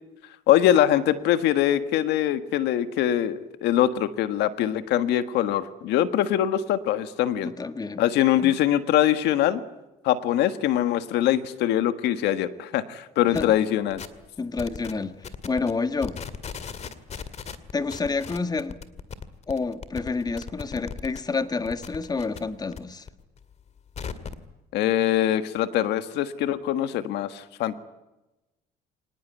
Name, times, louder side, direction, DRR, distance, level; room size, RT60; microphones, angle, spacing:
voice 1, 0.5-7.5 8.0-9.6 10.0-14.0 24.7-27.8, left 12 dB, 85° left, 11 dB, 1.6 m, -23 dB
voice 2, 7.4-8.0 8.4-8.5 13.3-13.5 14.4-16.2 17.7-18.8 19.5-23.1, left 4 dB, 25° left, 10 dB, 1.5 m, -29 dB
sound 1, 13.3-13.5 13.9-14.3 14.6-14.9 15.2-15.7 16.0-21.2 21.5-22.8 23.1-24.4, left 6 dB, 40° left, 2.2 m, -38 dB
25.5 x 19.5 x 9.5 m, 1.0 s
cardioid pair, 110°, 17 cm